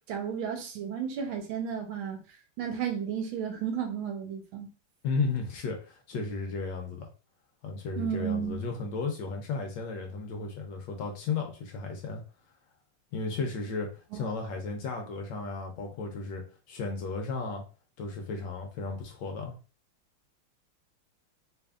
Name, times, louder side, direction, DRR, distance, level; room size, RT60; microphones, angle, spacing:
voice 1, 0.1-2.2 2.6-4.7 8.0-8.6 14.1-14.4, right 8 dB, 75° right, 1.6 m, -33 dB
voice 2, 5.0-7.1 7.6-12.2 13.1-17.6 18.0-19.5, left 4 dB, 70° left, 1.2 m, -34 dB
3.3 x 3.3 x 2.3 m
omnidirectional pair, 2.3 m